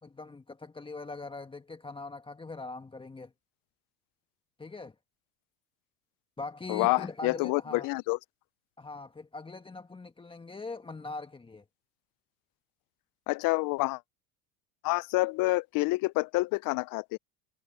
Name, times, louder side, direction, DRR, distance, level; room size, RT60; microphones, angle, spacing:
voice 1, 0.0-3.3 4.6-4.9 6.4-7.9 8.8-11.6, left 3 dB, 10° left, 1.5 m, -42 dB
voice 2, 6.7-8.2 13.3-14.0 14.8-17.2, left 23 dB, 50° left, 0.7 m, -28 dB
hypercardioid pair, 95°, 42 cm